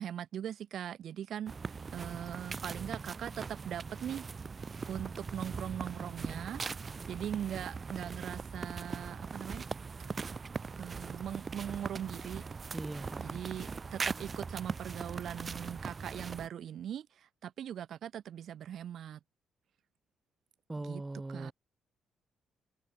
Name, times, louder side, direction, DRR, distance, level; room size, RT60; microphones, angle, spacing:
voice 1, 0.0-4.2 4.8-6.7 7.1-9.6 10.8-12.4 13.2-19.2 20.8-21.0 21.3-21.5, right 10 dB, 65° right, 0.3 m, -40 dB
sound 1, 1.5-16.5, right 5 dB, 35° right, 1.3 m, -40 dB
voice 2, 12.7-13.4 20.7-21.5, right 2 dB, 15° right, 0.7 m, -40 dB
cardioid pair, 90°, 0 cm